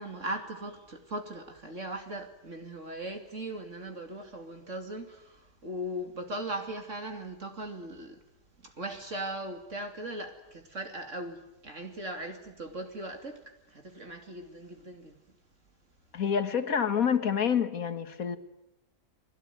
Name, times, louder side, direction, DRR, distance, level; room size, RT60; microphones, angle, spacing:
voice 1, 0.0-8.2 8.6-13.4 13.7-15.1, right 1 dB, 45° right, 5 dB, 3.0 m, -39 dB
voice 2, 16.1-18.4, left 7 dB, 55° left, 10 dB, 1.9 m, -27 dB
30.0 x 20.5 x 9.5 m, 0.88 s
omnidirectional pair, 1.8 m